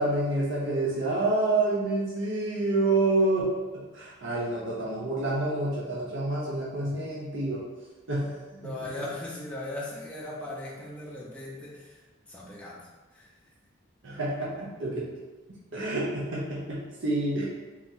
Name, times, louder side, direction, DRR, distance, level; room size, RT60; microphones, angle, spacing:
voice 1, 0.0-3.5 3.9-7.6 8.1-8.4 8.6-8.7 14.0-15.0 15.7-17.4, right 2 dB, 65° right, -6 dB, 0.7 m, -28 dB
voice 2, 8.6-12.0 12.3-13.3, left 1 dB, 5° left, -6 dB, 0.6 m, -38 dB
3.8 x 2.9 x 2.7 m, 1.2 s
head